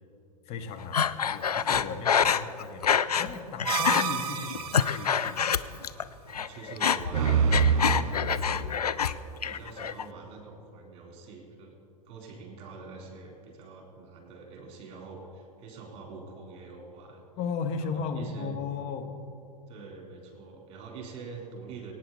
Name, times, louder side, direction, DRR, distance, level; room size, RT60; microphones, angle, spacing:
voice 1, 0.4-5.5 17.4-19.2, left 5 dB, 30° left, 6 dB, 1.2 m, -36 dB
Breathing, 0.9-3.3 3.6-4.0 4.5-6.0 6.3-9.1 9.4-10.0, left 7 dB, 75° left, 0.5 m, -26 dB
sound 1, 3.6-5.3 7.1-8.7, right 6 dB, 45° right, 1.7 m, -27 dB
voice 2, 6.3-8.8 9.1-11.7 12.1-17.2 17.8-18.6 19.7-21.9, right 4 dB, 30° right, 0 dB, 4.0 m, -45 dB
23.5 x 9.3 x 4.2 m, 2.9 s
figure-of-eight pair, 100°, 20 cm